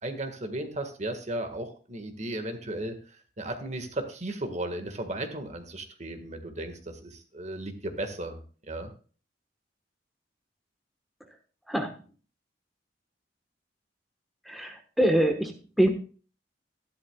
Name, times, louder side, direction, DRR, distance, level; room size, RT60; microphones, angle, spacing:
voice 1, 0.0-2.9 3.4-8.4 8.7-8.9, right 1 dB, 40° right, 7 dB, 1.6 m, -35 dB
voice 2, 14.5-15.9, right 1 dB, ahead, 4 dB, 1.2 m, -25 dB
12.5 x 11.5 x 2.3 m, 0.38 s
head